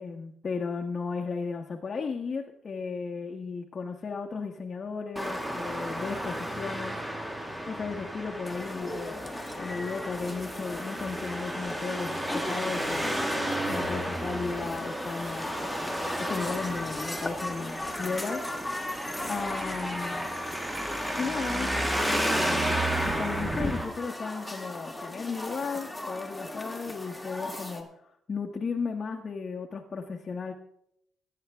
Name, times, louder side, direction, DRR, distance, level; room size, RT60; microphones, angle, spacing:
voice 1, 0.0-7.0 7.7-15.8 16.2-18.4 19.3-20.3 21.2-30.5, left 5 dB, 40° left, 1 dB, 1.1 m, -35 dB
Traffic noise roadway noise, 5.2-23.9, right 1 dB, 10° right, 1.6 m, -33 dB
sound 1, 8.4-27.8, left 1 dB, 5° left, 1.8 m, -38 dB
18.0 x 8.7 x 3.5 m, 0.75 s
cardioid pair, 90°, 0 cm